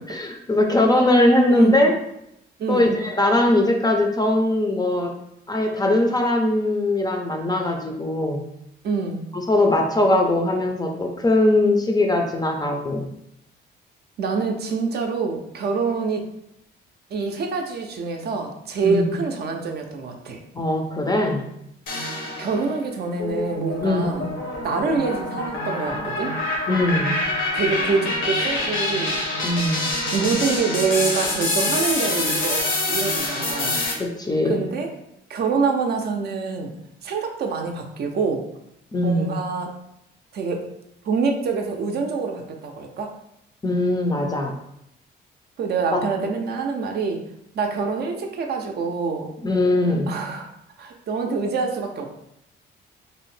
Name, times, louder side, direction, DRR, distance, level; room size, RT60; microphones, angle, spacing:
voice 1, 0.1-1.9 2.7-5.1 5.5-8.4 9.3-13.1 18.8-19.1 20.5-21.4 23.8-24.0 26.7-27.1 29.4-29.9 34.0-34.7 38.9-39.4 43.6-44.5 45.9-46.0 49.4-50.1, left 1 dB, 20° left, 2 dB, 0.4 m, -20 dB
voice 2, 8.8-9.2 14.2-16.3 17.1-20.4 22.4-24.3 24.6-26.3 27.5-29.2 30.1-33.8 34.4-34.9 35.3-36.7 37.0-38.4 39.0-39.7 40.3-40.6 41.0-43.1 45.6-47.2 47.5-49.3 50.1-50.5 50.8-52.1, right 4 dB, 55° right, 3 dB, 0.5 m, -25 dB
sound 1, 21.9-22.7 23.2-33.9, left 2 dB, 70° left, 0.8 m, -26 dB
2.6 x 2.0 x 3.1 m, 0.80 s
cardioid pair, 90°, 20 cm